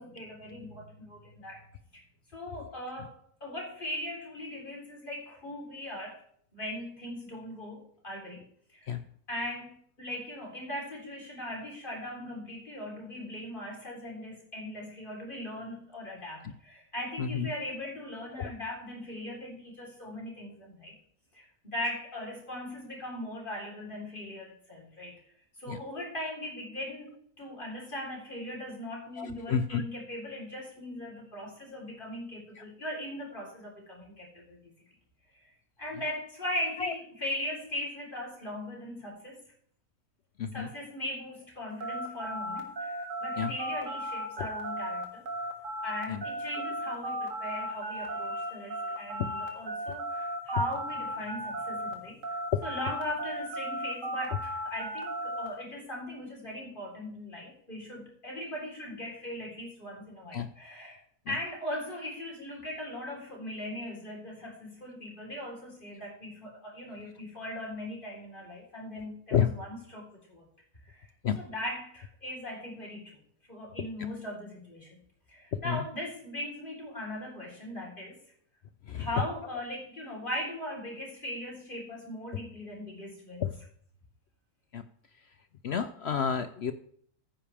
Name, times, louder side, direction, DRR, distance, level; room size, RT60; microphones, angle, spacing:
voice 1, 0.0-1.7 1.9-2.0 2.3-6.2 6.5-8.4 8.7-9.0 9.3-20.9 21.3-25.2 25.6-34.6 35.3-35.5 35.8-39.4 40.5-45.3 45.8-52.4 52.6-61.0 61.3-70.5 70.9-71.1 71.4-73.2 73.5-75.0 75.3-78.2 78.9-83.4, left 1 dB, 35° left, -2 dB, 4.0 m, -39 dB
voice 2, 29.2-29.8 36.8-36.9 40.4-40.7 43.4-43.5 44.4-44.5 46.1-46.2 60.3-60.5 69.3-69.5 71.2-71.4 75.7-75.8 78.9-79.1 83.4-83.5 84.7-84.8 85.6-86.7, left 7 dB, 65° left, 11 dB, 0.7 m, -30 dB
sound 1, 41.8-51.9 52.2-55.5, right 1 dB, 60° right, 2.1 m, -35 dB
14.5 x 9.8 x 3.4 m, 0.62 s
omnidirectional pair, 1.6 m